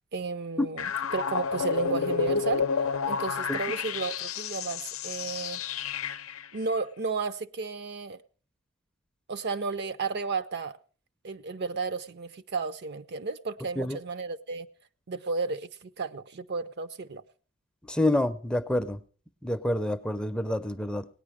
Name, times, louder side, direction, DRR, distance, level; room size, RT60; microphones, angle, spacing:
voice 1, 0.1-2.6 3.1-5.6 6.5-8.2 9.3-10.8 11.2-14.7 15.1-17.2, right 4 dB, 55° right, 0.6 m, -33 dB
sound 1, 0.8-6.5, left 6 dB, 80° left, 0.6 m, -30 dB
voice 2, 17.9-19.0 19.4-21.1, left 1 dB, 5° left, 0.5 m, -27 dB
18.0 x 9.8 x 4.8 m
head